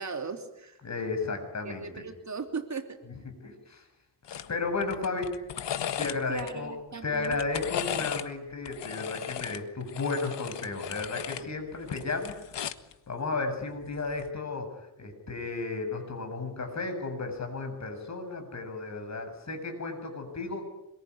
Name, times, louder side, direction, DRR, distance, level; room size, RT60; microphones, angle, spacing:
voice 1, 0.0-0.8 1.6-3.0 6.3-7.4 8.0-8.1, right 5 dB, 40° right, 6 dB, 3.3 m, -38 dB
voice 2, 0.8-2.0 3.4-3.8 4.5-5.3 6.0-6.7 7.0-12.6 13.1-20.7, left 3 dB, 40° left, 5 dB, 7.8 m, -33 dB
sound 1, 4.3-4.5 4.8-6.5 7.1-8.3 8.7-11.5 11.8-12.9 14.1-14.3, left 9 dB, 85° left, 1.6 m, -36 dB
26.0 x 23.0 x 9.9 m, 0.85 s
cardioid pair, 105°, 42 cm